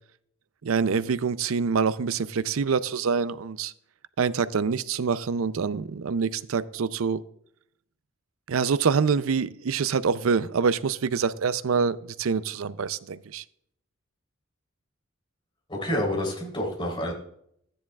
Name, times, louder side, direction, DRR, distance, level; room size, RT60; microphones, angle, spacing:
voice 1, 0.6-3.7 4.2-7.2 8.5-13.4, right 5 dB, 80° right, 15 dB, 0.5 m, -26 dB
voice 2, 15.7-17.1, left 1 dB, 25° left, -1 dB, 3.4 m, -28 dB
13.5 x 10.0 x 2.3 m, 0.69 s
head